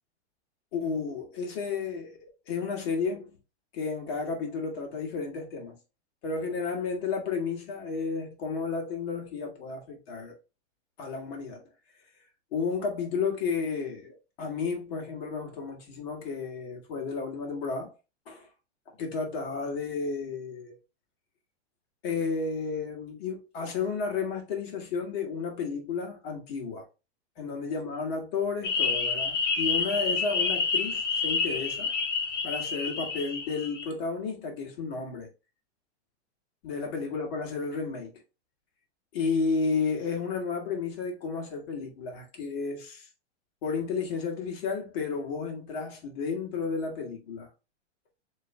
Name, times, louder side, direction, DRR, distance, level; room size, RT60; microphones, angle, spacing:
voice 1, 0.7-3.4 3.7-5.8 6.2-10.3 11.0-11.6 12.5-17.9 18.3-18.5 19.0-20.8 22.0-26.8 27.4-31.9 32.4-35.3 36.6-38.1 39.1-43.1 43.6-47.5, left 5 dB, 60° left, 1.8 m, -32 dB
sound 1, 28.6-33.9, left 5 dB, 85° left, 1.5 m, -28 dB
6.6 x 3.2 x 2.2 m
hypercardioid pair, 140°, 35 cm